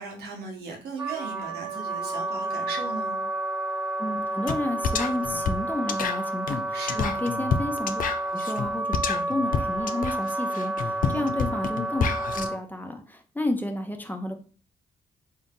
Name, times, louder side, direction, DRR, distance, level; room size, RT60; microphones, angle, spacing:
voice 1, 0.0-3.2 6.7-7.2 11.0-11.3, right 3 dB, 80° right, 1 dB, 1.1 m, -37 dB
Wind instrument woodwind instrument, 1.0-12.6, right 1 dB, 5° right, 1.4 m, -30 dB
voice 2, 4.0-8.0 8.3-14.4, left 1 dB, 10° left, 5 dB, 0.9 m, -31 dB
sound 1, 4.5-4.6 4.8-12.5, left 6 dB, 55° left, 0.5 m, -29 dB
3.7 x 2.7 x 3.7 m, 0.38 s
hypercardioid pair, 45°, 16 cm